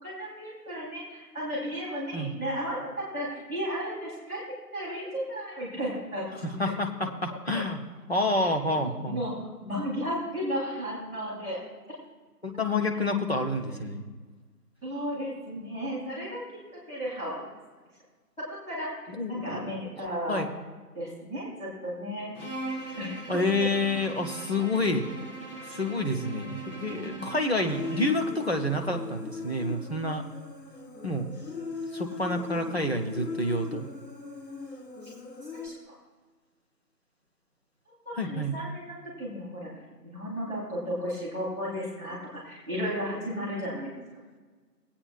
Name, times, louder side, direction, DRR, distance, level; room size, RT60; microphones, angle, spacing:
voice 1, 0.0-4.4 4.7-6.5 7.0-7.1 8.4-8.5 8.8-11.6 13.7-13.8 14.8-16.4 16.7-17.5 18.5-20.4 20.9-22.3 22.9-23.4 26.9-27.2 35.5-35.8 38.0-39.7 40.0-43.9, equal, 10° left, -13 dB, 2.3 m, -34 dB
voice 2, 6.4-7.8 8.1-9.2 12.4-14.0 19.1-20.5 23.3-25.0 25.7-30.2 31.0-31.3 31.9-33.9 38.2-38.5, left 2 dB, 40° left, 3 dB, 0.8 m, -29 dB
Bowed string instrument, 22.3-28.4, right 3 dB, 65° left, 2.4 m, -40 dB
Human voice, 27.7-35.7, left 4 dB, 85° left, 1.5 m, -38 dB
19.5 x 8.7 x 2.4 m, 1.4 s
figure-of-eight pair, 165°, 48 cm